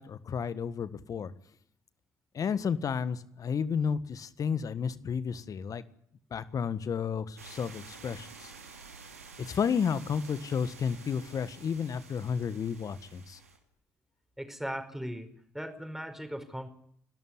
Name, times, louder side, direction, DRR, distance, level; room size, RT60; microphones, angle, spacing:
voice 1, 0.0-1.3 2.3-5.8 6.3-8.5 9.4-13.4, left 6 dB, 50° left, 14 dB, 1.5 m, -32 dB
sound 1, 7.4-13.6, right 5 dB, 90° right, 2.6 m, -50 dB
voice 2, 14.4-15.3 15.5-16.7, equal, 5° right, 8 dB, 5.1 m, -38 dB
30.0 x 13.0 x 9.8 m, 0.71 s
figure-of-eight pair, 45°, 8 cm